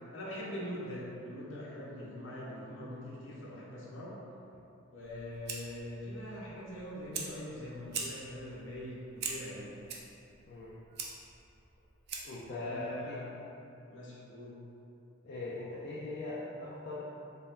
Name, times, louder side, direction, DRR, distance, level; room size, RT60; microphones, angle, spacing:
voice 1, 0.1-4.2 4.9-9.8 12.6-13.3 13.9-14.5, left 1 dB, 70° left, -6 dB, 0.9 m, -42 dB
Fire, 5.0-12.5, right 5 dB, 50° right, 0.4 m, -44 dB
voice 2, 12.2-13.2 15.2-17.0, left 2 dB, 50° left, -7 dB, 0.4 m, -40 dB
3.4 x 2.8 x 3.6 m, 2.9 s
head